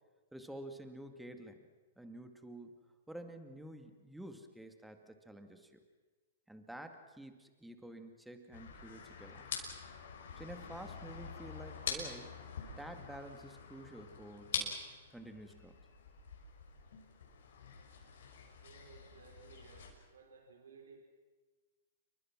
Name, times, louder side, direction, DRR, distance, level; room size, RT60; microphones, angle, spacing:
voice 1, 0.3-1.6 2.0-2.7 3.1-5.8 6.5-9.5 10.4-12.4 12.8-14.8 15.1-15.8, right 1 dB, 5° right, 6 dB, 2.3 m, -50 dB
sound 1, 8.5-19.9, left 6 dB, 70° left, 6.1 m, -45 dB
voice 2, 18.6-21.0, right 5 dB, 75° right, 3 dB, 4.7 m, -58 dB
28.5 x 23.5 x 6.2 m, 1.3 s
hypercardioid pair, 125°, 0 cm